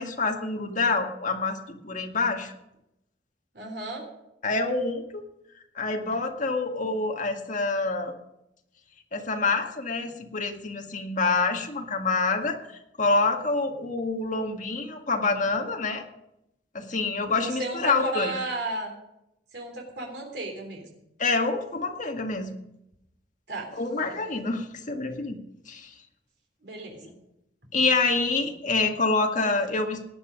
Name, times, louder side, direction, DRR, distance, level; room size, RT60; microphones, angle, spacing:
voice 1, 0.0-2.5 4.4-5.2 5.8-8.1 9.1-12.6 13.0-16.0 16.7-18.3 21.2-22.5 23.8-25.4 25.7-25.9 27.7-30.1, left 3 dB, 45° left, 3 dB, 1.9 m, -26 dB
voice 2, 3.5-4.1 17.4-18.9 19.5-20.9 23.5-23.7 26.6-27.1, right 2 dB, 65° right, 1 dB, 3.7 m, -34 dB
18.0 x 10.0 x 5.3 m, 0.84 s
head